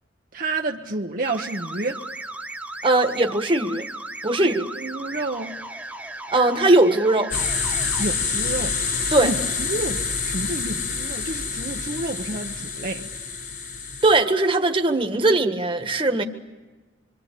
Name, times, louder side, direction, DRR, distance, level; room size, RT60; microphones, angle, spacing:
voice 1, 0.3-2.0 4.4-5.6 8.0-8.8 9.2-13.1, right 2 dB, 50° right, 2 dB, 1.0 m, -30 dB
sound 1, 1.2-8.1, right 2 dB, 10° right, 1.3 m, -36 dB
voice 2, 2.8-3.9 4.2-4.7 6.3-7.3 9.1-9.3 14.0-16.2, right 2 dB, 30° right, 5 dB, 1.6 m, -19 dB
sound 2, 7.3-14.2, left 5 dB, 55° left, 4.1 m, -27 dB
26.0 x 24.5 x 8.5 m, 1.2 s
head